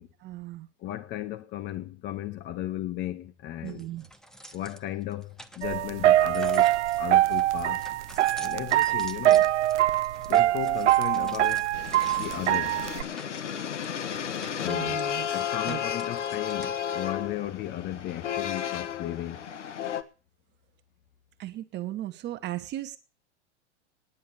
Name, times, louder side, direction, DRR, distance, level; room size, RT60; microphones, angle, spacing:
voice 1, 0.2-0.7 3.6-4.1 14.6-15.4 15.7-15.8 21.4-23.0, right 14 dB, 30° right, 0.9 m, -36 dB
voice 2, 0.8-3.9 4.5-7.9 8.4-9.5 10.3-11.7 12.2-12.8 14.6-15.0 15.3-19.4, left 13 dB, 30° left, 0.8 m, -35 dB
sound 1, 3.7-16.7, right 1 dB, ahead, 0.9 m, -48 dB
sound 2, 5.6-13.0, right 14 dB, 80° right, 0.6 m, -23 dB
sound 3, 11.7-20.0, left 9 dB, 90° left, 1.4 m, -33 dB
9.8 x 8.4 x 9.5 m
hypercardioid pair, 120°, 35 cm